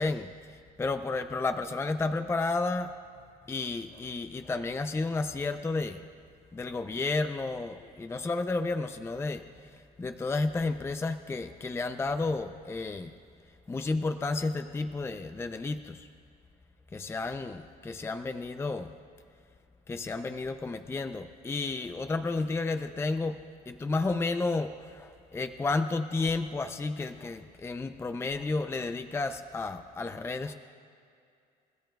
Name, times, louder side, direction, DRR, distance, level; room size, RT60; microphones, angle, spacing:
voice 1, 0.0-2.9 3.5-6.0 6.5-13.1 13.7-16.1 16.9-18.9 19.9-30.5, left 3 dB, 15° left, 9 dB, 0.5 m, -32 dB
29.5 x 14.0 x 2.3 m, 2.4 s
cardioid pair, 110°, 17 cm